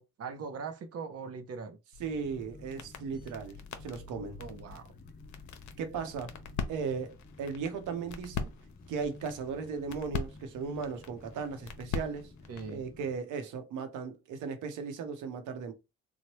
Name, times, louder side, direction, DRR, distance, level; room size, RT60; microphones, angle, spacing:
voice 1, 0.0-1.8 4.4-4.8 12.5-12.8, right 5 dB, 55° right, 0.6 m, -41 dB
sound 1, 1.9-12.8, left 5 dB, 70° left, 0.6 m, -42 dB
sound 2, 2.0-13.2, left 2 dB, 30° left, 0.8 m, -53 dB
voice 2, 2.0-4.4 5.8-6.3 6.7-8.5 8.9-12.3 12.7-15.7, right 5 dB, 85° right, 0.8 m, -37 dB
3.1 x 2.1 x 3.0 m
cardioid pair, 90°, 30 cm